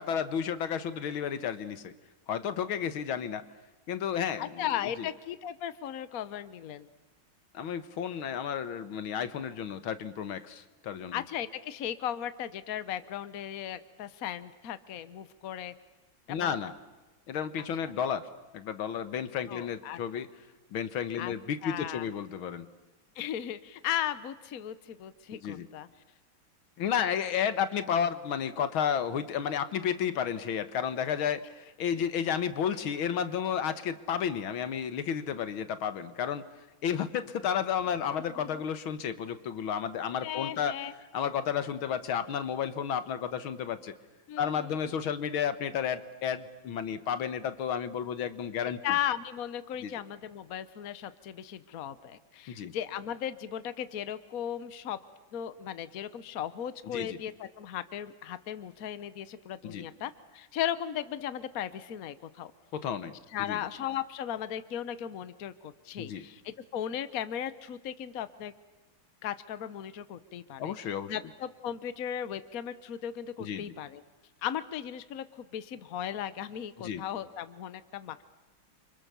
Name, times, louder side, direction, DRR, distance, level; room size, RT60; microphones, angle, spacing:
voice 1, 0.0-1.9 2.3-3.4 3.9-5.1 7.5-11.2 16.3-16.7 17.3-18.2 18.5-20.3 20.7-22.7 25.3-25.7 26.8-36.4 36.8-40.8 41.1-43.9 44.4-48.8 49.8-49.9 52.5-52.7 56.9-57.2 59.6-59.9 62.7-63.1 63.5-63.6 66.0-66.2 70.6-71.2 73.4-73.7 76.8-77.0, left 8 dB, 85° left, 12 dB, 2.1 m, -32 dB
voice 2, 4.4-6.9 11.1-15.7 16.3-16.6 17.6-17.7 19.5-20.0 21.2-21.3 21.6-22.1 23.2-25.9 38.4-38.6 40.2-40.9 44.3-44.8 48.8-55.0 55.3-62.5 63.3-68.5 69.2-70.7 71.1-74.0 74.4-78.2, left 10 dB, 50° left, 13 dB, 1.3 m, -36 dB
30.0 x 25.5 x 7.0 m, 1.1 s
omnidirectional pair, 2.2 m